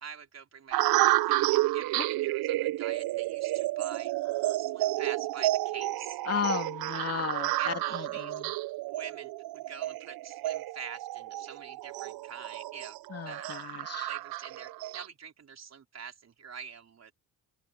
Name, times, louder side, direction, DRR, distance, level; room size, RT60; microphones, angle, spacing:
voice 1, 0.0-4.1 4.6-6.2 7.4-8.6 8.9-13.0 13.2-13.5 14.0-17.1, right 6 dB, 45° right, 4.2 m, -46 dB
sound 1, 0.7-15.1, right 16 dB, 70° right, 0.5 m, -31 dB
voice 2, 6.3-8.5 13.1-14.1, left 7 dB, 40° left, 2.8 m, -35 dB
open air
cardioid pair, 130°, 38 cm